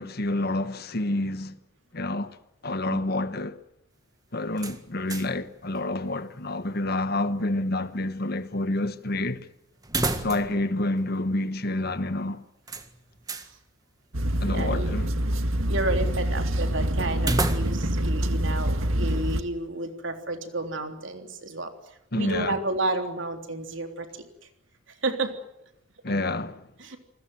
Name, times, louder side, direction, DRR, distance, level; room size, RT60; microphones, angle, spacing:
voice 1, 0.0-1.6 1.9-2.3 2.6-3.6 4.3-9.4 10.2-12.4 14.4-15.1 22.1-22.6 26.0-26.6, left 2 dB, 50° left, 1.3 m, -28 dB
sound 1, 4.6-5.5 5.8-5.9 9.8-10.7 11.0-11.1 12.7-13.5 17.2-18.0, right 2 dB, 20° right, 1.7 m, -30 dB
voice 2, 10.2-10.6 14.4-15.0 15.7-21.7 22.1-24.3 25.0-25.3 26.8-27.0, right 2 dB, 65° right, 3.4 m, -31 dB
sound 2, 14.1-19.4, right 1 dB, 80° right, 2.0 m, -26 dB
29.0 x 21.0 x 7.9 m
head